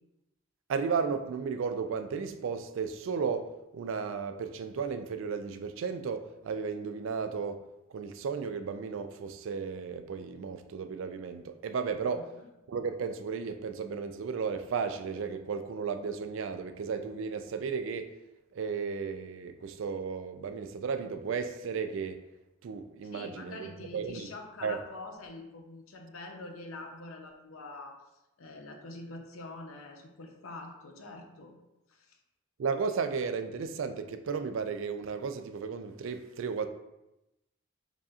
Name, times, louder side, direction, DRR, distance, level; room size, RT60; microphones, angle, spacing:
voice 1, 0.7-7.6 7.9-12.2 12.7-18.1 18.5-22.2 22.6-24.3 24.6-24.8 32.6-36.7, right 5 dB, 65° right, 0.3 m, -34 dB
voice 2, 12.1-12.5 23.0-28.0 28.4-31.5 31.9-32.2, left 2 dB, 75° left, 0.7 m, -45 dB
7.2 x 2.7 x 2.4 m
head